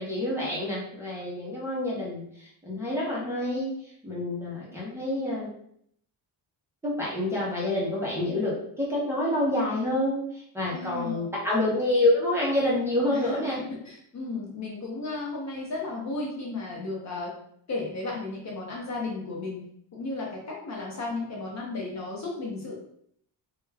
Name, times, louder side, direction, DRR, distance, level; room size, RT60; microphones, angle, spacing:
voice 1, 0.0-3.7 4.0-5.5 6.8-13.6, left 1 dB, 5° right, -7 dB, 0.6 m, -27 dB
voice 2, 10.7-11.2 13.1-17.3 17.7-19.6 19.9-22.8, left 3 dB, 40° left, -2 dB, 0.6 m, -34 dB
2.3 x 2.2 x 3.2 m, 0.68 s
cardioid pair, 135°, 44 cm